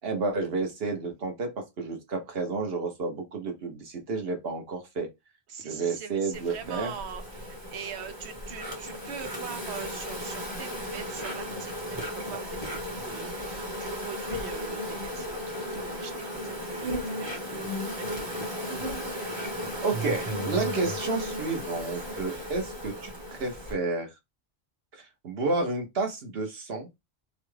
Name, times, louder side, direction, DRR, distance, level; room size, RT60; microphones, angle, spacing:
voice 1, 0.0-5.1 5.6-6.9 19.8-24.1 24.9-26.9, right 3 dB, 70° right, 1.2 m, -31 dB
voice 2, 5.5-18.6 22.0-22.5, right 7 dB, 90° right, 1.0 m, -43 dB
Insect, 6.3-23.7, equal, 25° right, 0.9 m, -35 dB
3.0 x 2.3 x 3.2 m
omnidirectional pair, 1.1 m